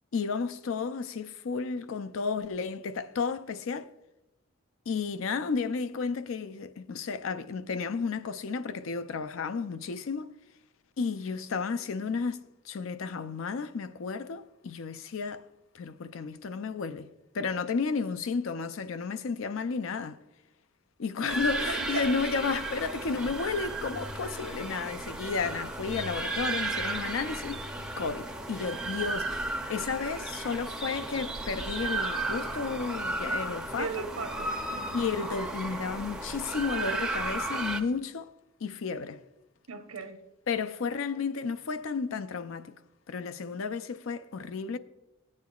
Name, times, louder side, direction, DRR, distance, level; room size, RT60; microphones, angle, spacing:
voice 1, 0.1-3.9 4.9-10.3 11.0-15.4 15.7-17.1 17.3-20.2 21.0-27.6 28.0-34.0 34.9-38.3 38.6-39.2 40.5-42.8 43.1-44.8, left 5 dB, 65° left, 0.4 m, -32 dB
sound 1, 21.3-37.8, right 2 dB, 5° right, 0.5 m, -34 dB
voice 2, 21.7-22.1 33.8-35.0 39.7-40.3, right 5 dB, 90° right, 1.0 m, -37 dB
15.5 x 8.5 x 2.3 m
head